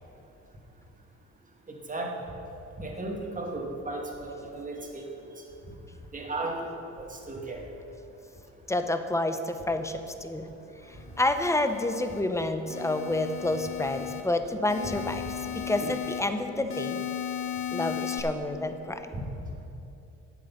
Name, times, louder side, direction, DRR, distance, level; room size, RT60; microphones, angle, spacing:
voice 1, 2.8-5.0 6.1-6.6 7.3-7.6 19.1-19.2, right 2 dB, 25° right, 0 dB, 2.1 m, -34 dB
voice 2, 8.7-10.5 11.2-17.0 17.7-19.2, left 2 dB, 10° left, 8 dB, 0.8 m, -29 dB
sound 1, 11.1-12.2 12.7-14.2 14.7-16.2 16.7-18.2, left 10 dB, 45° left, 1.4 m, -36 dB
12.0 x 8.4 x 5.8 m, 2.9 s
cardioid pair, 90°, 30 cm